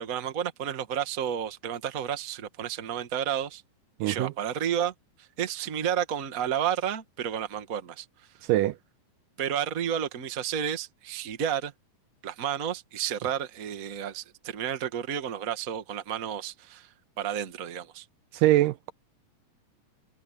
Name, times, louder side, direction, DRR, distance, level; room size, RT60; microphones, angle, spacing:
voice 1, 0.0-3.6 4.0-8.3 9.4-11.7 12.2-18.1, right 9 dB, 40° right, 1.2 m, -31 dB
voice 2, 4.0-4.3 8.5-8.8 18.3-18.9, right 15 dB, 80° right, 2.1 m, -23 dB
omnidirectional pair, 4.1 m